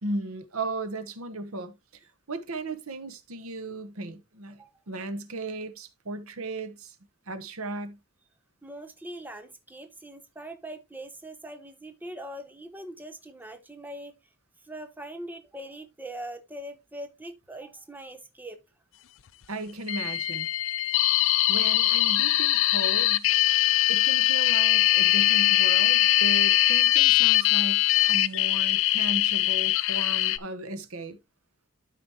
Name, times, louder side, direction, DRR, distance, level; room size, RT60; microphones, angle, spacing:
voice 1, 0.0-1.7 2.3-7.0 7.3-8.0 19.5-20.5 21.5-23.3 23.9-27.8 28.1-31.2, right 2 dB, 75° right, 1.0 m, -36 dB
voice 2, 8.6-14.1 14.6-18.6, right 1 dB, 10° right, 0.7 m, -41 dB
sound 1, 19.9-30.4, left 14 dB, 65° left, 0.5 m, -22 dB
12.5 x 5.0 x 2.9 m
head